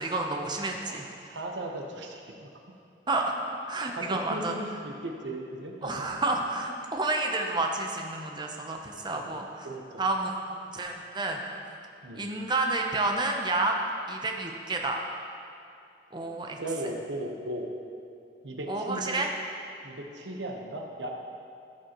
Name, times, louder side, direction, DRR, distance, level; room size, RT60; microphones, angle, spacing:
voice 1, 0.0-1.1 3.1-3.3 3.7-4.5 5.8-9.7 10.0-10.3 10.7-11.4 12.1-13.8 14.1-15.0 16.1-16.6 18.7-19.3, right 2 dB, 25° right, 2 dB, 0.8 m, -30 dB
voice 2, 1.2-2.5 3.9-6.1 9.1-9.4 9.6-10.0 12.0-12.3 16.6-17.7 18.4-19.2 19.8-21.1, right 1 dB, 85° right, 1 dB, 1.1 m, -37 dB
14.0 x 7.5 x 3.1 m, 2.6 s
head